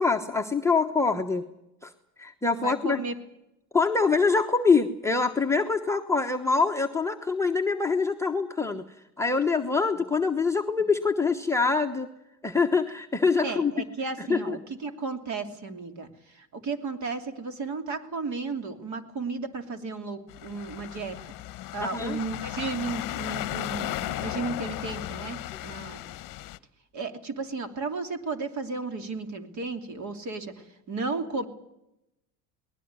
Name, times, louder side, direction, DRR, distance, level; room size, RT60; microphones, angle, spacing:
voice 1, 0.0-1.5 1.8-1.9 2.2-3.0 3.7-8.8 9.2-12.1 12.4-13.7 14.2-14.6 21.8-22.2, left 4 dB, 5° left, 2 dB, 1.1 m, -24 dB
voice 2, 2.6-3.2 10.0-10.1 13.4-21.2 21.7-26.0 26.9-31.5, right 4 dB, 40° right, 7 dB, 2.9 m, -34 dB
sound 1, 20.3-26.6, left 15 dB, 45° left, 1.1 m, -35 dB
20.0 x 17.5 x 9.6 m, 0.85 s
supercardioid pair, 110°, 44 cm